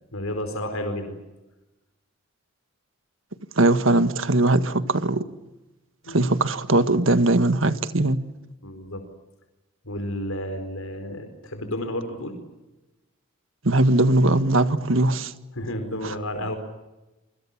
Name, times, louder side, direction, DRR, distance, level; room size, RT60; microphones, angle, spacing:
voice 1, 0.1-1.2 6.0-6.2 8.6-9.0 9.8-12.4 15.5-16.6, left 1 dB, 80° left, 4.6 m, -31 dB
voice 2, 3.6-5.3 6.1-8.2 13.6-15.3 16.0-16.1, right 2 dB, 65° right, 1.7 m, -20 dB
28.5 x 25.0 x 7.4 m
head